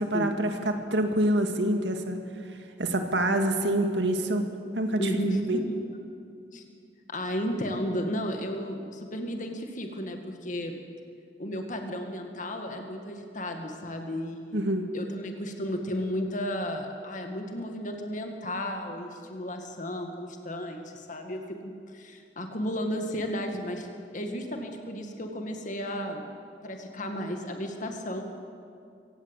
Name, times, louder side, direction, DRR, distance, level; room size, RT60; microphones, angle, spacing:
voice 1, 0.0-2.2 2.8-4.4 4.8-5.1 5.5-5.6 14.5-14.8, right 1 dB, 80° right, 5 dB, 2.0 m, -26 dB
voice 2, 5.0-5.8 6.5-6.6 7.1-10.7 11.4-23.9 24.1-26.2 26.6-28.2, equal, 45° left, 4 dB, 2.0 m, -33 dB
24.5 x 17.0 x 8.2 m, 2.4 s
head